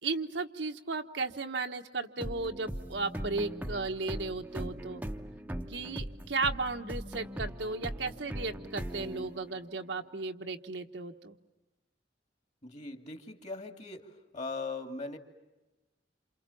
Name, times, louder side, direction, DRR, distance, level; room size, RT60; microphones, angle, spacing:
voice 1, 0.0-5.0 5.7-11.3, right 3 dB, 75° right, 5 dB, 1.4 m, -35 dB
sound 1, 2.2-9.8, right 1 dB, 10° right, 1.0 m, -40 dB
voice 2, 12.6-15.2, left 3 dB, 40° left, 6 dB, 2.5 m, -40 dB
28.5 x 28.5 x 7.1 m, 1.0 s
head